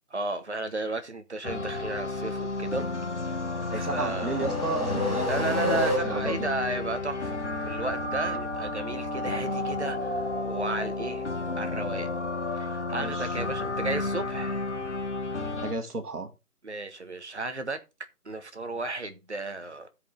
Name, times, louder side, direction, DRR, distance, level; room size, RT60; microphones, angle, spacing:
voice 1, 0.1-2.9 3.7-4.4 5.3-11.3 11.6-12.1 12.5-14.7 16.6-17.8 18.2-19.9, right 2 dB, 45° right, 1.4 m, -34 dB
sound 1, 1.4-15.7, left 2 dB, 50° left, 1.4 m, -32 dB
sound 2, 3.4-6.5, left 1 dB, 10° left, 3.8 m, -30 dB
voice 2, 3.7-6.5 13.0-13.3 15.6-16.3, right 3 dB, 75° right, 2.1 m, -33 dB
15.5 x 5.3 x 3.8 m
figure-of-eight pair, 175°, 46 cm